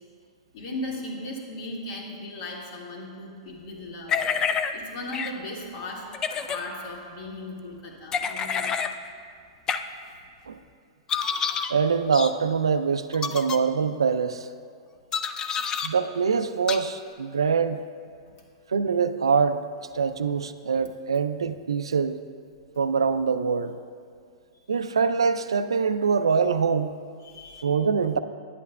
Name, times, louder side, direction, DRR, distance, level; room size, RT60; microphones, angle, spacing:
voice 1, 0.5-4.2 4.7-8.7 15.4-15.9 24.5-24.8 27.2-27.7, left 1 dB, 55° left, -2 dB, 1.9 m, -37 dB
sound 1, 4.1-4.7 5.1-5.3 6.1-6.6 8.1-8.9 9.7-9.8 11.1-11.7 12.1-12.3 13.1-13.6 15.1-15.9 16.7-16.8, left 6 dB, 25° left, 0.3 m, -27 dB
voice 2, 11.7-14.5 15.8-17.8 18.7-19.6 19.9-22.2 22.8-23.8 24.7-27.0 27.6-28.2, right 5 dB, 85° right, 11 dB, 0.4 m, -24 dB
10.5 x 8.4 x 2.2 m, 2.2 s
hypercardioid pair, 115°, 3 cm